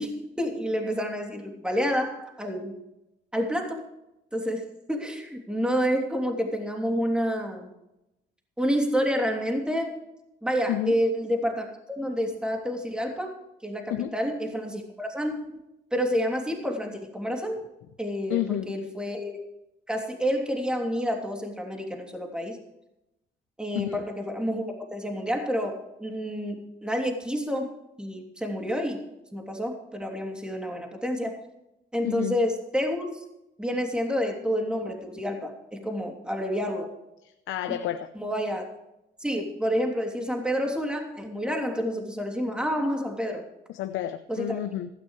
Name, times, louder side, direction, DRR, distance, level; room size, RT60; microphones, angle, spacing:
voice 1, 0.0-2.7 3.3-3.8 4.3-7.7 8.6-10.0 10.4-11.7 12.0-13.3 13.6-15.5 15.9-17.6 18.0-19.4 19.9-22.6 23.6-24.6 24.9-27.7 28.0-29.0 29.3-31.3 31.9-33.2 33.6-36.9 38.1-38.6 39.2-43.4 44.3-44.6, equal, 5° right, 2 dB, 3.0 m, -29 dB
voice 2, 18.3-18.7 23.7-24.0 32.0-32.4 37.5-38.1 43.7-44.9, left 13 dB, 85° left, 8 dB, 0.7 m, -30 dB
16.0 x 13.5 x 3.3 m, 0.89 s
cardioid pair, 90°, 20 cm